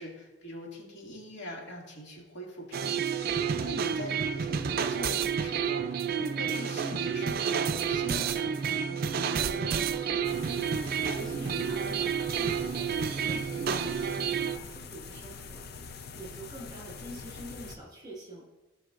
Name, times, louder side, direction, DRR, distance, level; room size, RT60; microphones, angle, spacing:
voice 1, 0.0-9.0, equal, 75° left, -3 dB, 2.3 m, -43 dB
sound 1, 2.7-14.6, right 7 dB, 55° right, 0.4 m, -30 dB
voice 2, 9.4-15.6 16.1-18.4, right 1 dB, 25° right, -5 dB, 3.1 m, -46 dB
sound 2, 10.2-17.8, left 5 dB, 55° left, 0.6 m, -44 dB
16.5 x 5.7 x 2.5 m, 1.2 s
head